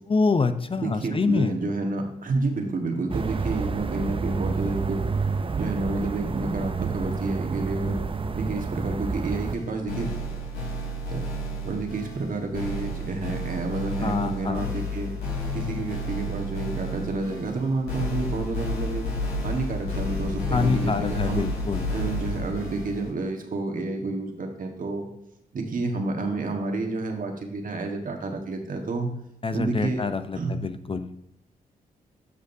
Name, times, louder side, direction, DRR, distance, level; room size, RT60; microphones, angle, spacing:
voice 1, 0.1-1.6 14.0-14.7 20.5-21.9 29.4-31.1, left 4 dB, 35° left, 10 dB, 0.6 m, -26 dB
voice 2, 0.8-5.0 5.5-8.0 8.3-10.2 11.1-11.3 11.6-15.1 15.5-19.0 19.4-21.5 21.9-25.1 25.5-29.1 29.5-30.0 30.4-30.6, right 3 dB, 60° right, 3 dB, 1.5 m, -29 dB
sound 1, 3.1-9.6, right 4 dB, 35° right, 0.6 m, -29 dB
sound 2, 9.4-23.1, left 1 dB, 85° left, 3.2 m, -31 dB
12.5 x 5.1 x 2.7 m, 0.81 s
cardioid pair, 55°, 16 cm